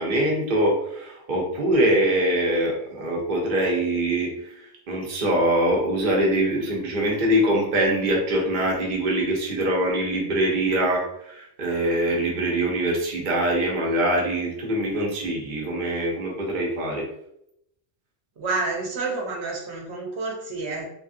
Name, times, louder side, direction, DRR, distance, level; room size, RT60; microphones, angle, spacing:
voice 1, 0.0-17.0, right 1 dB, 50° right, -2 dB, 0.8 m, -23 dB
voice 2, 18.4-20.8, right 3 dB, 80° right, 0 dB, 1.1 m, -29 dB
3.3 x 2.4 x 2.5 m, 0.77 s
omnidirectional pair, 1.1 m